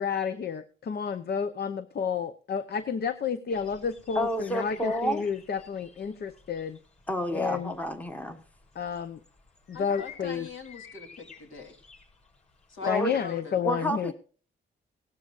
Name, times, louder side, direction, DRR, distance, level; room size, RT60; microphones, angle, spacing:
voice 1, 0.0-6.8 7.3-7.7 8.7-9.2 9.7-10.5 12.9-14.1, left 6 dB, 50° left, 11 dB, 0.8 m, -30 dB
sound 1, 3.5-13.0, left 6 dB, 35° left, 6.7 m, -53 dB
voice 2, 4.1-5.2 7.1-8.4 12.8-13.1 13.6-14.1, equal, 5° left, 8 dB, 1.2 m, -29 dB
voice 3, 9.7-11.8 12.7-13.6, left 5 dB, 65° left, 2 dB, 3.4 m, -42 dB
17.5 x 13.0 x 2.5 m, 0.39 s
cardioid pair, 105°, 21 cm